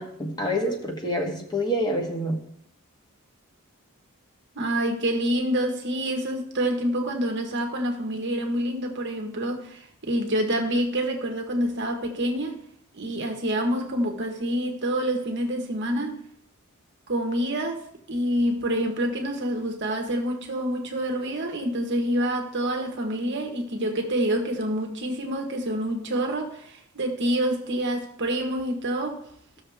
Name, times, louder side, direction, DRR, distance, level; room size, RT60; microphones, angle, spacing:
voice 1, 0.0-2.4, equal, 20° left, 1.4 m, -27 dB
voice 2, 4.5-12.6 12.9-16.2 17.1-17.8 18.1-29.2, right 1 dB, 55° right, 1.3 m, -27 dB
15.0 x 6.5 x 3.5 m
head